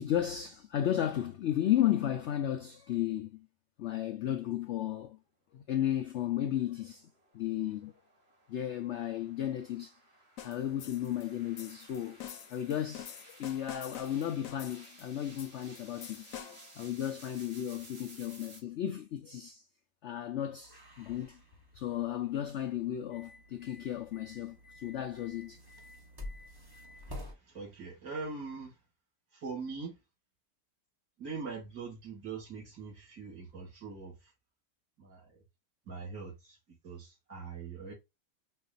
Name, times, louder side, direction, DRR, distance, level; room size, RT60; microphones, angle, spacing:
voice 1, 0.0-3.5 3.8-5.2 5.5-7.9 8.5-10.0 10.4-12.2 12.5-16.3 16.7-19.6 20.0-21.4 21.7-25.6, left 11 dB, 85° left, 0.6 m, -34 dB
sound 1, 6.5-18.6, right 2 dB, 40° right, 1.8 m, -57 dB
sound 2, 10.4-16.8, left 9 dB, 65° left, 1.0 m, -48 dB
sound 3, 20.6-27.3, left 1 dB, 20° right, 0.8 m, -49 dB
voice 2, 27.1-28.8 29.3-30.0 31.2-34.3 35.0-35.4 35.8-36.6 36.8-37.9, right 4 dB, 60° right, 3.2 m, -42 dB
5.4 x 2.4 x 2.6 m
omnidirectional pair, 1.8 m